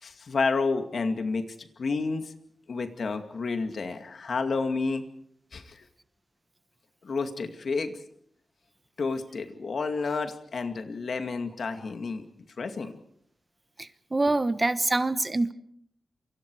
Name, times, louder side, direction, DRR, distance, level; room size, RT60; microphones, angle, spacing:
voice 1, 0.0-2.3 2.7-5.0 5.5-5.8 7.0-8.0 9.0-12.2 12.6-13.0, left 4 dB, 65° left, 7 dB, 2.3 m, -30 dB
voice 2, 13.8-15.5, right 2 dB, 25° right, 12 dB, 1.1 m, -25 dB
28.5 x 24.5 x 4.9 m, 0.67 s
wide cardioid pair, 115°, 0 cm